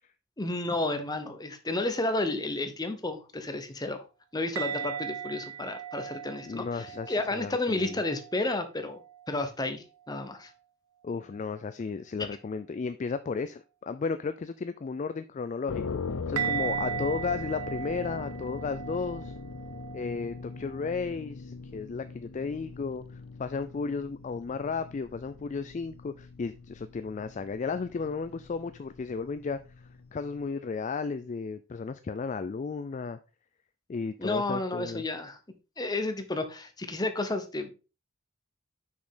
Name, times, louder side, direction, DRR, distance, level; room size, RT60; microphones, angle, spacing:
voice 1, 0.4-4.1 4.3-9.0 9.3-10.5 34.2-35.4 35.8-37.7, left 2 dB, 20° left, 8 dB, 0.9 m, -31 dB
sound 1, 4.6-8.5 8.8-9.4 16.4-21.0, right 9 dB, 70° right, 0.4 m, -37 dB
voice 2, 6.4-8.0 11.0-16.0 16.3-19.4 19.9-29.6 30.1-33.2 33.9-35.0, left 4 dB, 35° left, 11 dB, 0.3 m, -34 dB
sound 2, 15.7-30.5, left 4 dB, 75° left, 0.6 m, -41 dB
6.3 x 6.0 x 3.7 m, 0.32 s
head